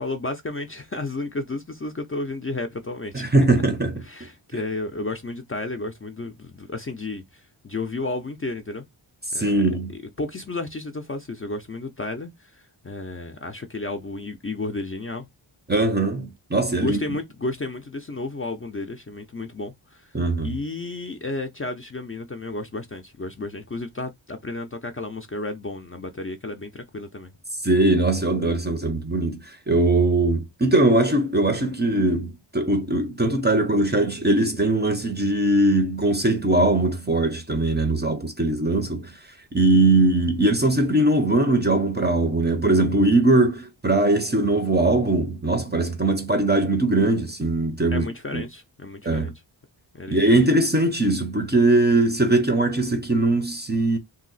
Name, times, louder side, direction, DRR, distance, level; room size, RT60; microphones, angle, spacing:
voice 1, 0.0-3.2 4.0-8.8 9.3-9.6 10.2-15.3 16.8-20.2 20.4-27.3 47.9-49.3 49.9-50.3, left 2 dB, 30° left, 0.4 m, -32 dB
voice 2, 3.1-4.0 9.3-9.9 15.7-17.2 20.1-20.5 27.6-39.2 39.5-48.4 49.0-49.3 50.1-54.0, right 2 dB, 20° right, 0.5 m, -21 dB
2.7 x 2.0 x 3.9 m
wide cardioid pair, 100°, 47 cm